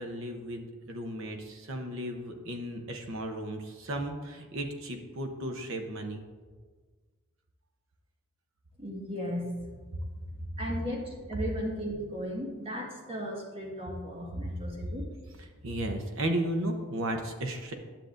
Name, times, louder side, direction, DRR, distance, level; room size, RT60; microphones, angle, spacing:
voice 1, 0.0-6.2 15.6-17.7, right 1 dB, 65° right, 5 dB, 0.9 m, -34 dB
voice 2, 8.8-9.5 10.6-15.1, equal, 25° right, -2 dB, 1.5 m, -36 dB
10.0 x 6.6 x 2.5 m, 1.5 s
head